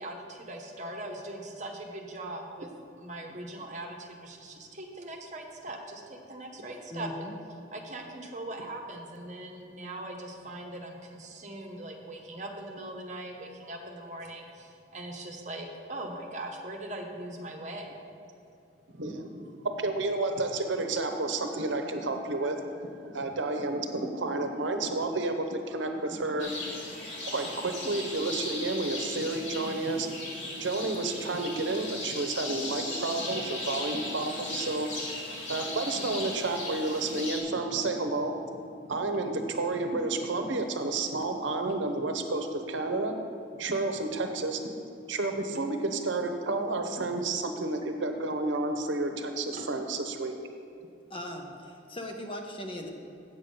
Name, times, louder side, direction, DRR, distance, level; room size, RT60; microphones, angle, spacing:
voice 1, 0.0-2.7 3.0-7.3 7.7-18.1 49.5-49.7, right 1 dB, 40° right, 2 dB, 1.0 m, -40 dB
voice 2, 6.9-7.4 51.1-52.9, left 1 dB, 30° left, 2 dB, 0.8 m, -39 dB
voice 3, 18.9-22.6 23.1-26.8 27.3-34.9 35.5-38.4 38.9-43.1 43.6-44.6 45.1-50.3, right 2 dB, 80° right, 6 dB, 0.8 m, -31 dB
sound 1, 26.4-37.4, left 2 dB, 75° left, 2.3 m, -37 dB
8.3 x 7.0 x 5.4 m, 2.6 s
head